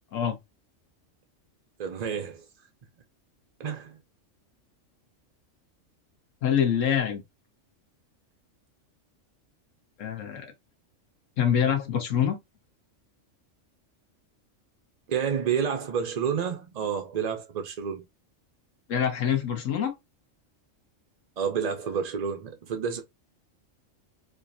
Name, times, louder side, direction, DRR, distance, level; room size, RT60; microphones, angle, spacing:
voice 1, 1.8-2.4 3.6-4.0 15.1-18.1 21.4-23.0, right 7 dB, 55° right, 0.4 m, -29 dB
voice 2, 6.4-7.2 10.0-10.5 11.4-12.4 18.9-19.9, left 8 dB, 75° left, 1.3 m, -25 dB
4.3 x 2.6 x 2.6 m
omnidirectional pair, 1.3 m